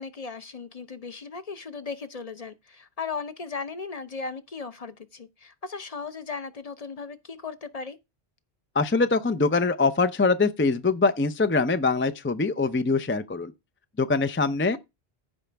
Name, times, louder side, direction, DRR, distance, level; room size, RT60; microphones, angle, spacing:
voice 1, 0.0-8.0, left 5 dB, 40° left, 0.8 m, -37 dB
voice 2, 8.7-13.5 14.0-14.8, left 3 dB, 20° left, 0.3 m, -23 dB
15.0 x 5.0 x 3.4 m
omnidirectional pair, 1.0 m